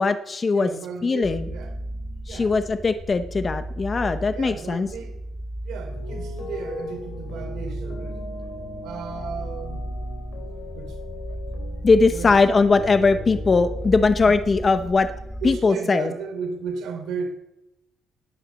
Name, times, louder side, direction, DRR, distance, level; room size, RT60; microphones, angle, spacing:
voice 1, 0.0-0.7 1.0-1.5 2.3-4.9 11.8-15.1 15.4-16.1, left 4 dB, 25° left, 9 dB, 0.7 m, -20 dB
voice 2, 0.6-1.7 2.3-2.5 4.3-5.1 5.6-8.2 8.8-9.8 10.7-11.0 12.1-12.4 14.3-14.4 15.4-17.3, right 5 dB, 70° right, 4 dB, 3.1 m, -34 dB
sound 1, 1.2-15.6, right 1 dB, ahead, 1.4 m, -35 dB
sound 2, 5.9-14.9, left 3 dB, 65° left, 4.4 m, -39 dB
18.5 x 9.8 x 6.2 m, 0.90 s
cardioid pair, 150°, 0 cm